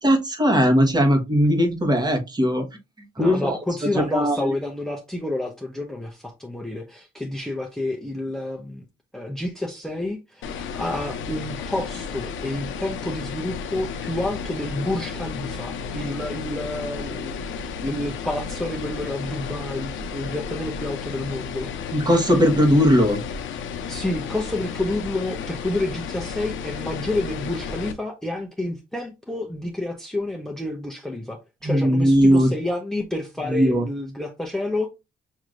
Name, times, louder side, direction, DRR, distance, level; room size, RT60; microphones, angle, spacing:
voice 1, 0.0-2.6 3.2-3.6 3.9-4.5 21.9-23.2 31.6-32.5 33.5-33.8, equal, 20° right, 1.3 m, -19 dB
voice 2, 3.2-8.9 9.1-21.7 23.9-34.9, left 1 dB, ahead, 0.8 m, -29 dB
sound 1, 10.4-27.9, left 6 dB, 75° left, 0.7 m, -33 dB
6.2 x 2.9 x 2.6 m
cardioid pair, 90°, 20 cm